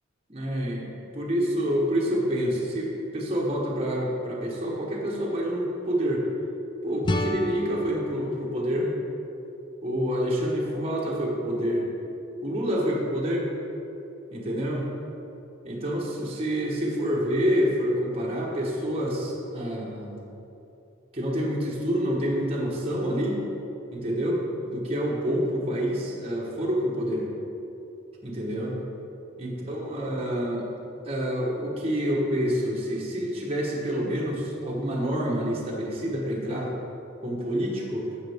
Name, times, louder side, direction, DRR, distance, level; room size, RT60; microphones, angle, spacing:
voice 1, 0.3-0.9 1.1-6.3 6.8-9.0 9.8-11.9 12.4-13.5 14.3-14.9 15.6-20.2 21.1-23.4 23.9-27.3 28.2-28.8 29.4-30.6 31.0-36.7 37.2-38.1, equal, 30° right, -3 dB, 1.2 m, -27 dB
sound 1, 7.0-9.9, left 1 dB, 20° left, 0.4 m, -32 dB
10.5 x 7.3 x 3.5 m, 2.9 s
head